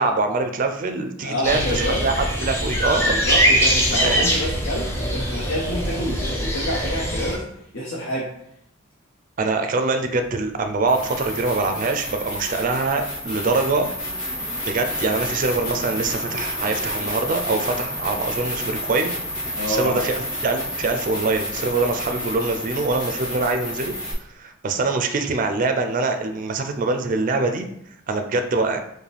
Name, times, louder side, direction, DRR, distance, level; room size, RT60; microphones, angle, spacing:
voice 1, 0.0-3.2 3.9-4.3 9.4-13.9 14.7-19.1 19.7-23.9 24.4-27.7 28.1-28.8, right 3 dB, 40° right, 7 dB, 0.4 m, -24 dB
voice 2, 1.2-2.1 3.1-7.5 7.7-8.4 19.5-20.0, equal, 80° left, -4 dB, 0.8 m, -27 dB
sound 1, 1.4-7.4, equal, 10° left, 0.6 m, -22 dB
sound 2, 10.9-24.1, equal, 50° left, 1.3 m, -30 dB
4.8 x 2.1 x 3.3 m, 0.75 s
head